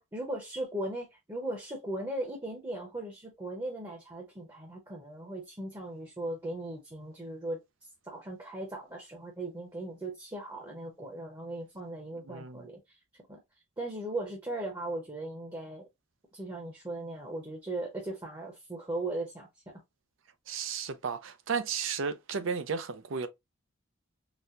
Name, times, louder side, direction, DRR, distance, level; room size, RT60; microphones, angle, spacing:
voice 1, 0.0-7.6 8.0-13.0 13.3-13.4 13.8-15.9 16.3-19.5, right 1 dB, 20° right, 0.8 m, -38 dB
voice 2, 12.3-12.6 20.5-23.3, right 5 dB, 70° right, 0.5 m, -34 dB
4.0 x 2.2 x 2.5 m
head